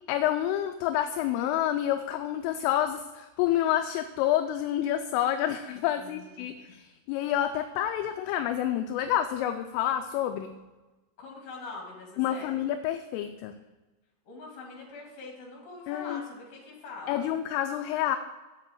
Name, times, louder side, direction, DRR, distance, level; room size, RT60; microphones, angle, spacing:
voice 1, 0.1-10.5 12.2-13.5 15.9-16.2 17.1-18.2, left 11 dB, 85° left, 7 dB, 3.0 m, -28 dB
voice 2, 6.0-6.5 11.2-12.7 14.3-17.3, left 3 dB, 45° left, -1 dB, 3.8 m, -44 dB
8.5 x 7.4 x 7.4 m, 1.2 s
omnidirectional pair, 5.9 m